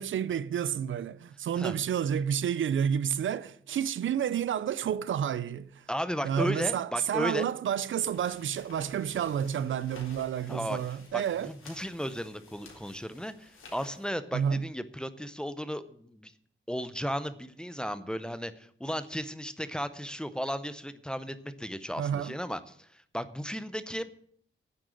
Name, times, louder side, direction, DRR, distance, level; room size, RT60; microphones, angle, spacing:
voice 1, 0.0-5.8 6.2-11.5 14.3-14.6 22.0-22.4, right 8 dB, 75° right, 0.6 m, -30 dB
voice 2, 5.9-7.5 10.5-10.8 11.1-16.3 16.7-24.1, equal, 5° left, 0.6 m, -35 dB
sound 1, 7.8-14.1, left 3 dB, 85° left, 3.8 m, -53 dB
9.9 x 7.7 x 9.1 m
wide cardioid pair, 165°, 20 cm